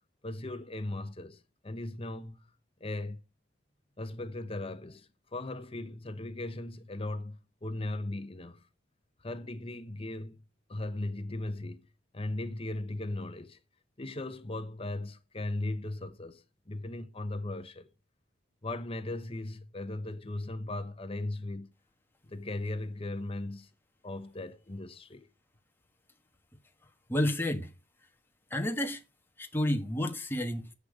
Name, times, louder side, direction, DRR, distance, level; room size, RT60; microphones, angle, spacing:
voice 1, 0.2-2.4 2.8-3.2 4.0-8.7 9.2-10.4 10.7-11.8 12.1-13.6 14.0-17.9 18.6-21.7 22.2-23.7 24.0-25.3, left 2 dB, 30° left, 1.0 m, -37 dB
voice 2, 27.1-27.7 28.5-29.0 29.4-30.7, left 1 dB, 10° left, 1.3 m, -30 dB
10.5 x 8.4 x 4.9 m
head